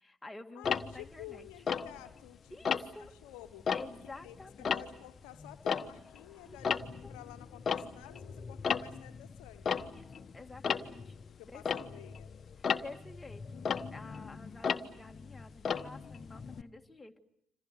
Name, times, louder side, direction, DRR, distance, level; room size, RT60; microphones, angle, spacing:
voice 1, 0.0-1.5 2.5-3.1 3.7-4.8 6.5-6.6 7.0-7.1 9.9-11.2 11.5-12.0 12.6-17.2, left 2 dB, 15° left, 4 dB, 2.2 m, -50 dB
voice 2, 0.5-3.7 4.2-9.9 11.3-12.3, left 14 dB, 70° left, 9 dB, 1.1 m, -52 dB
Tick-tock, 0.6-2.3 2.6-3.1 3.5-6.2 6.5-16.6, left 6 dB, 45° left, 1.2 m, -35 dB
27.0 x 27.0 x 6.8 m, 0.77 s
hypercardioid pair, 50°, 0 cm